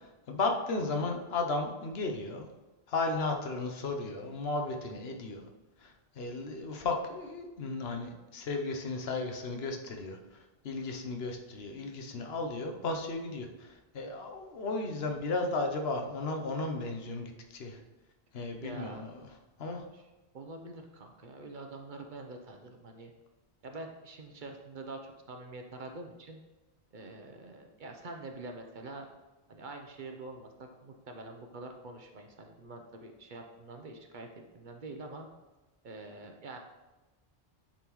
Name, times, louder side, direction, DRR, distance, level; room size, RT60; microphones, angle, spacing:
voice 1, 0.0-2.5 2.9-5.5 5.8-10.2 10.6-17.8 18.3-19.3 19.6-19.8, left 3 dB, 75° left, 3 dB, 1.0 m, -34 dB
voice 2, 18.6-19.1 19.9-20.1 20.3-23.1 23.6-26.4 26.9-29.1 29.5-30.5 30.8-34.3 34.5-35.3 35.8-36.6, right 2 dB, 55° right, 3 dB, 0.8 m, -45 dB
9.9 x 3.7 x 3.0 m, 1.1 s
omnidirectional pair, 1.1 m